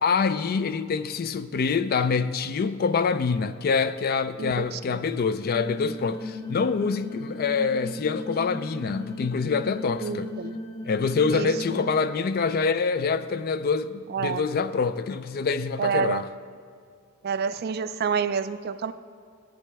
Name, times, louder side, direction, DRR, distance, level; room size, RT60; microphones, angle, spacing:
voice 1, 0.0-10.3 10.8-16.3, left 5 dB, 45° left, 0.4 m, -26 dB
sound 1, 5.4-11.9, left 2 dB, 65° left, 1.1 m, -36 dB
voice 2, 10.0-10.5 11.3-11.5 14.1-14.4 15.8-16.2 17.2-18.9, right 6 dB, 45° right, 0.4 m, -28 dB
15.0 x 9.3 x 3.4 m
head